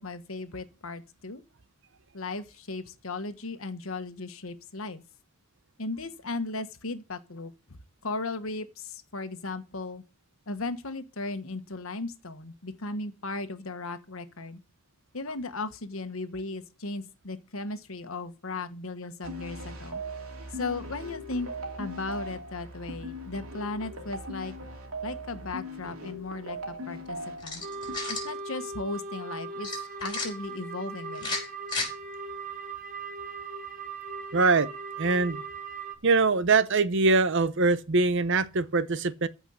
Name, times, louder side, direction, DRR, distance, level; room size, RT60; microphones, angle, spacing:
voice 1, 0.0-1.4 2.1-5.0 5.8-7.5 8.0-10.0 10.5-14.6 15.1-20.0 20.5-21.5 21.8-24.5 25.0-27.6 28.1-29.7 30.0-31.4, left 3 dB, 70° left, 1.4 m, -36 dB
sound 1, 19.2-28.0, equal, 85° right, 2.7 m, -39 dB
sound 2, 27.4-28.3 29.6-30.3 31.1-31.9, left 3 dB, 20° left, 4.6 m, -33 dB
sound 3, 27.6-36.0, right 4 dB, 40° right, 1.5 m, -39 dB
voice 2, 34.3-34.7 35.0-35.4 36.0-39.3, right 3 dB, 60° right, 0.8 m, -23 dB
14.5 x 5.4 x 6.5 m
head